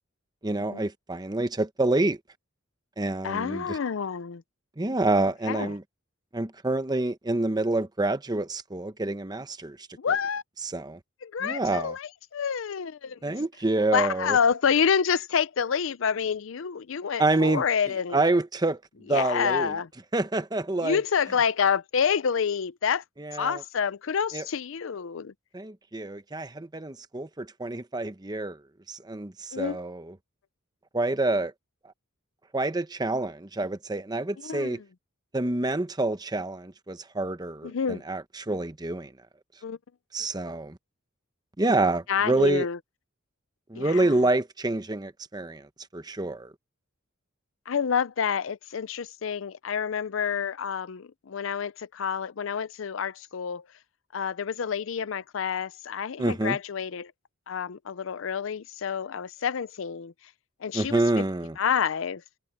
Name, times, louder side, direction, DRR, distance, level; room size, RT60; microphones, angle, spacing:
voice 1, 0.4-2.2 3.0-3.8 4.8-5.8 6.3-9.8 10.6-11.0 11.4-11.9 13.2-14.4 17.2-17.6 18.1-18.8 19.1-19.7 20.1-21.0 23.2-23.6 24.3-24.4 25.5-28.6 28.9-30.1 30.9-31.5 32.5-34.8 35.3-39.1 40.1-40.8 41.6-42.7 43.7-46.5 56.2-56.6 60.7-61.6, right 2 dB, 20° right, 0.9 m, -27 dB
voice 2, 3.2-4.4 5.5-5.7 10.0-10.4 11.2-13.3 13.9-18.2 19.1-19.9 20.8-23.0 23.3-25.3 29.5-29.8 34.4-34.8 37.6-38.0 39.6-39.8 42.1-42.8 43.7-44.2 47.7-53.6 54.1-57.1 57.5-60.1 60.6-61.0 61.6-62.2, left 7 dB, 65° left, 0.5 m, -28 dB
head